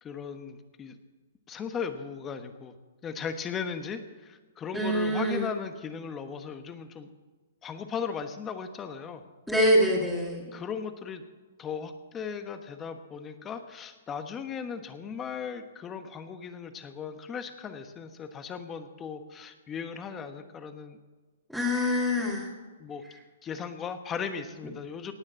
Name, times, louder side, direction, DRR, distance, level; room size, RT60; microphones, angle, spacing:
voice 1, 0.0-1.0 1.5-2.7 3.0-7.1 7.6-9.2 10.5-11.2 11.6-21.0 22.8-23.0 23.4-25.1, left 6 dB, 20° left, 8 dB, 1.2 m, -37 dB
voice 2, 4.7-5.5 9.5-10.4 21.5-22.5, equal, ahead, -6 dB, 2.2 m, -25 dB
18.5 x 6.5 x 7.5 m, 1.3 s
hypercardioid pair, 145°, 0 cm